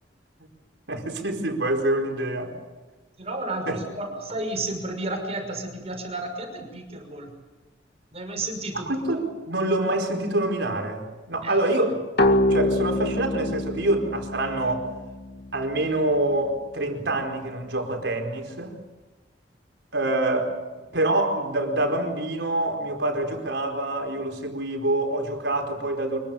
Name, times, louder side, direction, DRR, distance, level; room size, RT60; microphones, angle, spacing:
voice 1, 0.9-2.6 3.7-3.8 8.7-12.0 12.5-14.9 15.5-18.8 19.9-20.6 20.9-26.2, right 1 dB, 80° right, 4.5 m, -26 dB
voice 2, 3.2-7.3 8.1-8.9 11.4-11.6, right 2 dB, 35° right, 5.9 m, -32 dB
sound 1, 12.2-15.7, left 1 dB, 60° left, 2.1 m, -25 dB
25.5 x 22.5 x 7.1 m
head